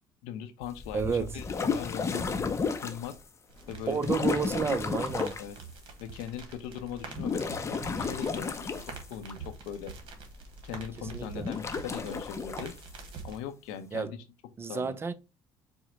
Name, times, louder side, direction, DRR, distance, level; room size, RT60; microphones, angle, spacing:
voice 1, 0.2-2.3 2.8-3.1 3.7-4.4 5.4-5.6 6.0-9.9 10.6-12.7 13.2-14.2 14.7-15.0, left 9 dB, 85° left, 0.6 m, -40 dB
sound 1, 0.6-3.2 4.0-5.5 7.0-9.3 11.3-12.7, left 5 dB, 30° left, 0.6 m, -32 dB
voice 2, 0.9-1.4 3.9-5.4 11.1-11.5 13.9-14.1 14.6-15.1, right 5 dB, 25° right, 0.4 m, -30 dB
sound 2, 3.5-13.4, right 4 dB, 60° right, 1.1 m, -46 dB
4.4 x 2.1 x 3.6 m
supercardioid pair, 85°, 10 cm